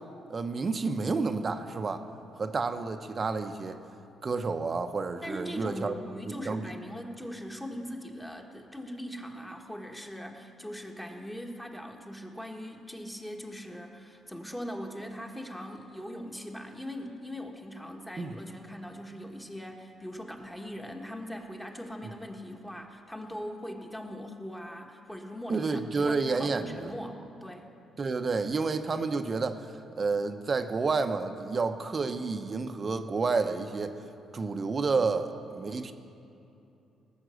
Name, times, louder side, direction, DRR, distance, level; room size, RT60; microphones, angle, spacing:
voice 1, 0.3-2.0 2.4-3.8 4.2-6.0 6.5-6.7 18.2-18.4 25.5-26.9 28.0-29.7 30.0-34.0 34.3-35.9, right 4 dB, 35° right, 8 dB, 0.8 m, -30 dB
voice 2, 5.2-27.7, equal, 5° left, 2 dB, 1.4 m, -41 dB
18.5 x 7.3 x 6.4 m, 2.7 s
cardioid pair, 90°, 0 cm